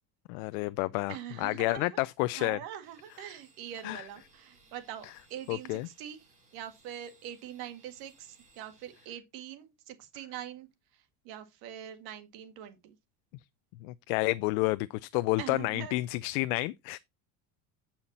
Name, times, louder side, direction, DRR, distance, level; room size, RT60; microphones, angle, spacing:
voice 1, 0.3-1.1 1.4-2.6 3.8-4.0 5.5-5.9 13.8-17.0, left 21 dB, 90° left, 0.5 m, -30 dB
voice 2, 1.1-2.0 2.4-13.0 15.4-16.0, right 11 dB, 70° right, 1.9 m, -44 dB
sound 1, 2.8-9.1, right 3 dB, 20° right, 4.0 m, -63 dB
8.8 x 5.8 x 4.1 m
cardioid pair, 140°, 38 cm